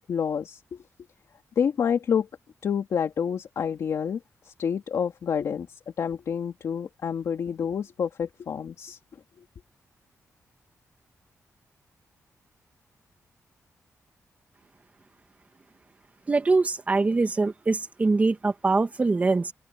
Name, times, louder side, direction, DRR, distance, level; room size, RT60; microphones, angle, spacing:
voice 1, 0.1-0.8 1.6-2.3 2.6-9.0, left 7 dB, 65° left, 2.6 m, -28 dB
voice 2, 16.3-19.5, right 3 dB, 25° right, 2.1 m, -23 dB
open air
wide cardioid pair, 150°, 6 cm